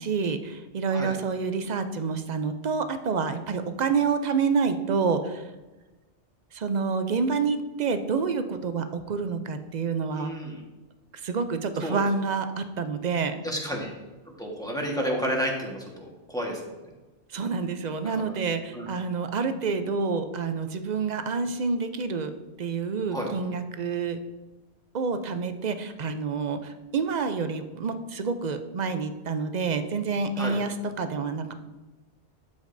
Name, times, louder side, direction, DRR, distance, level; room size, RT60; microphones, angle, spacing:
voice 1, 0.0-5.5 6.5-10.3 11.1-13.4 17.3-22.3 22.6-24.2 24.9-31.5, right 5 dB, 50° right, 9 dB, 0.6 m, -28 dB
voice 2, 10.1-10.6 11.8-12.0 13.4-13.9 14.4-16.6 18.0-18.3 18.7-18.9 23.1-23.3 30.4-30.6, equal, 5° left, -2 dB, 1.3 m, -31 dB
12.5 x 5.2 x 2.6 m, 1.1 s
omnidirectional pair, 1.2 m